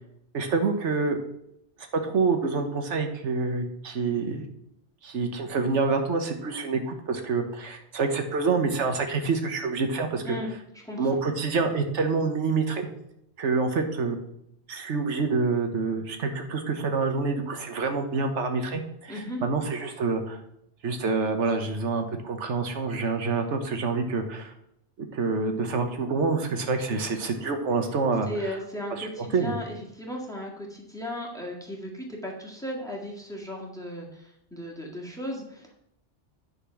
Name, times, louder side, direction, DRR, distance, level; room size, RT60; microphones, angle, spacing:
voice 1, 0.3-1.2 1.9-4.5 5.0-10.4 11.0-12.9 13.4-14.2 14.7-20.4 20.8-24.5 25.0-28.6 29.0-29.5, right 4 dB, 85° right, 5 dB, 1.4 m, -27 dB
voice 2, 10.8-11.2 19.1-19.4 28.3-35.8, left 1 dB, 5° left, -1 dB, 1.8 m, -36 dB
10.0 x 4.4 x 5.8 m, 0.76 s
omnidirectional pair, 1.2 m